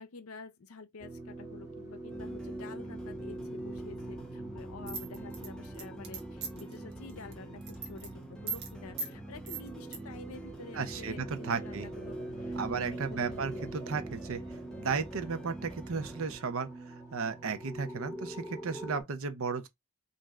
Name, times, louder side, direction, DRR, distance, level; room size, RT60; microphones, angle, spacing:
voice 1, 0.0-13.7, left 4 dB, 70° left, 0.6 m, -49 dB
sound 1, 1.0-19.0, right 2 dB, 15° right, 1.8 m, -43 dB
sound 2, 2.1-16.3, right 1 dB, 5° left, 0.6 m, -48 dB
sound 3, 4.9-6.7 7.1-7.3 7.6-8.1 8.5-8.7 9.0-9.1 9.5-10.0, right 4 dB, 50° right, 1.0 m, -38 dB
voice 2, 10.7-11.9 12.6-14.4 14.8-19.7, right 5 dB, 65° right, 0.6 m, -34 dB
3.2 x 2.6 x 3.5 m
head